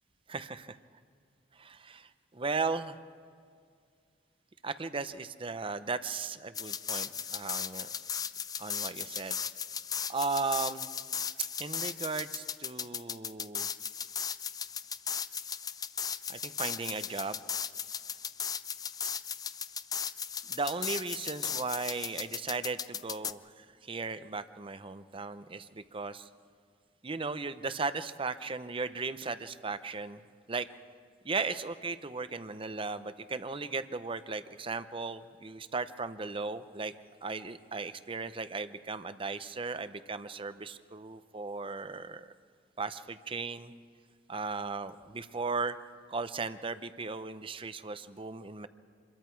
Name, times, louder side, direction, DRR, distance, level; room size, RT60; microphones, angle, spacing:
voice 1, 0.3-0.7 1.5-3.0 4.6-7.9 8.6-9.4 10.1-10.9 11.6-13.7 16.3-17.4 20.5-26.3 27.0-30.2 30.5-30.7 31.2-36.9 37.2-42.3 42.8-43.7 44.3-45.8 46.1-48.7, right 4 dB, 30° right, 12 dB, 0.7 m, -36 dB
sound 1, 6.5-23.3, left 7 dB, 20° left, 0.4 m, -37 dB
27.0 x 22.5 x 4.6 m, 2.2 s
head